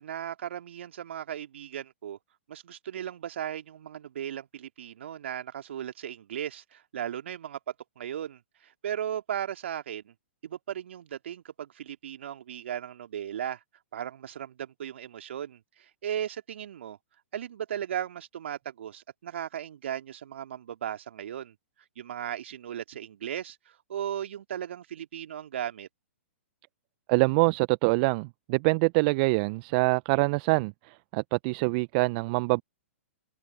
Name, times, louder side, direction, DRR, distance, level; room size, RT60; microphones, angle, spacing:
voice 1, 0.0-2.2 2.5-7.6 8.0-10.1 10.4-13.6 13.9-17.0 17.3-21.6 22.0-25.9, right 10 dB, 60° right, 2.4 m, -36 dB
voice 2, 27.1-32.6, right 28 dB, 40° right, 0.9 m, -25 dB
figure-of-eight pair, 115°, 7 cm